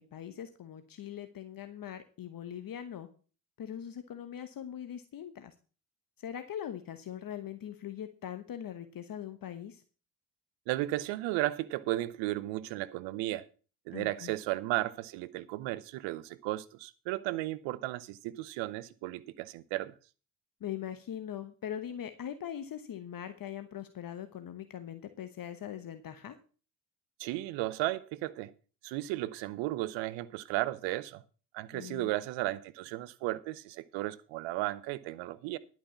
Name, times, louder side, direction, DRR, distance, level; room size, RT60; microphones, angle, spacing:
voice 1, 0.1-3.1 3.6-5.5 6.2-9.8 13.9-14.3 20.6-26.4 31.7-32.1, left 10 dB, 50° left, 1.2 m, -41 dB
voice 2, 10.7-13.4 13.9-19.9 27.2-28.5 28.8-31.2 31.5-35.6, right 17 dB, 75° right, 0.9 m, -34 dB
11.0 x 6.0 x 7.1 m
hypercardioid pair, 55°, 45 cm